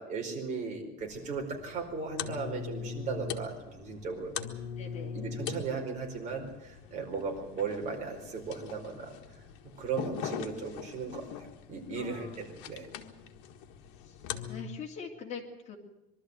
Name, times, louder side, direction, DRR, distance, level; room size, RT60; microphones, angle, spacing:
voice 1, 0.0-4.5 5.1-9.1 9.8-11.2 11.7-12.9, right 4 dB, 40° right, 2 dB, 4.8 m, -36 dB
sound 1, 1.0-14.6, left 7 dB, 80° left, 1.6 m, -42 dB
voice 2, 4.8-5.2 11.9-12.4 14.0-15.8, left 6 dB, 40° left, 1 dB, 3.2 m, -43 dB
22.5 x 13.0 x 9.2 m, 0.97 s
cardioid pair, 155°, 19 cm